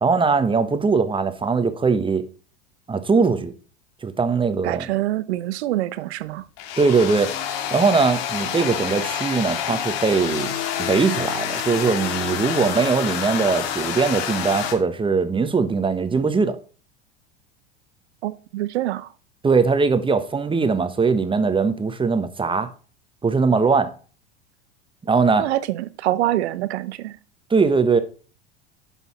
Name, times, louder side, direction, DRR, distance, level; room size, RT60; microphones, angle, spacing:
voice 1, 0.0-2.2 2.9-3.5 4.0-4.9 6.8-7.4 7.7-10.5 10.8-16.6 19.4-22.7 23.2-23.9 25.1-25.5 27.5-28.0, right 4 dB, 15° right, 1.1 m, -20 dB
voice 2, 4.6-6.4 18.2-19.1 25.4-27.2, right 15 dB, 70° right, 0.8 m, -25 dB
sound 1, 6.6-14.7, left 9 dB, 65° left, 2.3 m, -28 dB
10.5 x 5.5 x 4.2 m
hypercardioid pair, 85°, 34 cm